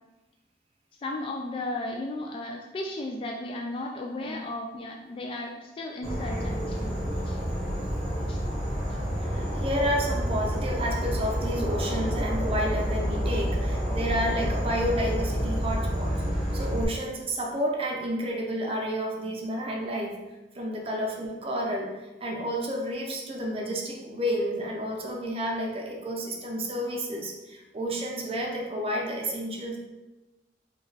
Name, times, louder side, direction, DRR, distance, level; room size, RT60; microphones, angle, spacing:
voice 1, 1.0-6.9 7.3-7.4 8.3-8.4, left 2 dB, 30° left, 0 dB, 0.3 m, -35 dB
Insect / Frog, 6.0-16.8, equal, ahead, 1.3 m, -29 dB
voice 2, 7.1-7.6 9.3-16.2 16.5-20.2 20.5-21.9 22.2-29.8, equal, 35° right, 0 dB, 0.5 m, -30 dB
4.4 x 2.4 x 3.2 m, 1.1 s
head